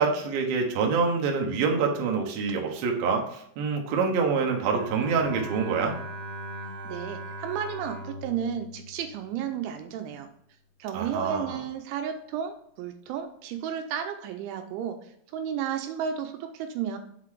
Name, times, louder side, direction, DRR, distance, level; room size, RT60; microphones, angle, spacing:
voice 1, 0.0-6.0 10.9-11.6, right 5 dB, 70° right, 1 dB, 2.4 m, -26 dB
Bowed string instrument, 4.5-9.8, right 1 dB, 50° right, 1.7 m, -40 dB
voice 2, 6.8-10.3 10.8-17.0, right 8 dB, 85° right, 6 dB, 3.0 m, -33 dB
7.3 x 3.9 x 4.8 m, 0.69 s
omnidirectional pair, 5.4 m